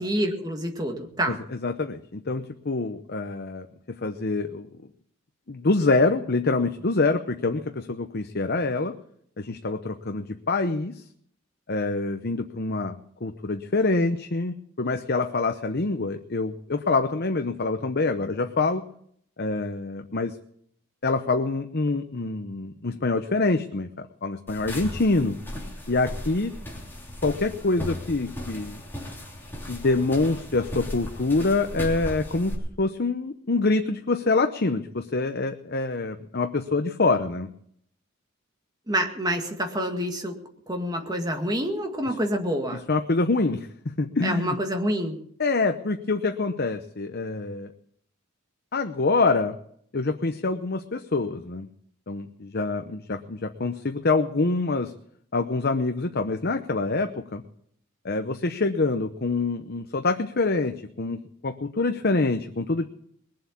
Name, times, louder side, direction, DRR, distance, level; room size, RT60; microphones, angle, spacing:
voice 1, 0.0-1.4 38.9-40.4 40.7-42.8 44.2-45.2, equal, 20° right, 3 dB, 2.0 m, -27 dB
voice 2, 1.6-4.7 5.5-9.0 9.4-11.0 11.7-18.8 19.4-20.4 21.0-25.4 25.9-26.6 27.2-28.8 29.7-37.5 42.9-43.7 44.0-44.5 45.4-47.7 48.7-49.6 49.9-51.7 52.1-54.9 55.3-57.4 58.0-62.9, left 3 dB, 50° left, 7 dB, 0.8 m, -26 dB
sound 1, 24.5-32.5, left 1 dB, 10° left, 3.2 m, -36 dB
21.0 x 7.7 x 8.5 m, 0.66 s
head